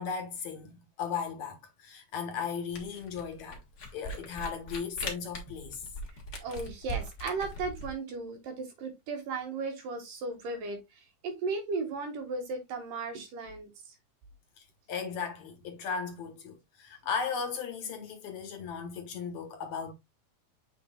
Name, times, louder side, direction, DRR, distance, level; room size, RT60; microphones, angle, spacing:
voice 1, 0.0-3.6 3.9-5.9 14.6-19.9, left 6 dB, 65° left, 2.2 m, -36 dB
Camera, 2.7-7.9, equal, 40° left, 1.5 m, -40 dB
voice 2, 6.4-10.8 11.2-13.7, right 4 dB, 70° right, 3.3 m, -35 dB
7.7 x 5.9 x 2.3 m
omnidirectional pair, 4.1 m